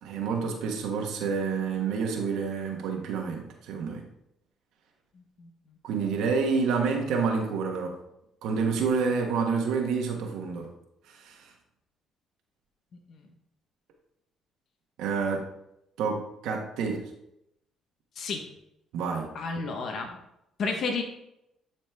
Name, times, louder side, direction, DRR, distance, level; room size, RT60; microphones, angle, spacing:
voice 1, 0.0-4.0 5.8-8.0 8.4-10.7 11.1-11.5 15.0-15.5 16.0-17.1 18.9-19.3, right 5 dB, 80° right, 1 dB, 1.3 m, -28 dB
voice 2, 19.3-20.1 20.6-21.0, left 4 dB, 60° left, 3 dB, 1.2 m, -30 dB
10.5 x 4.2 x 3.6 m, 0.81 s
cardioid pair, 90°, 0 cm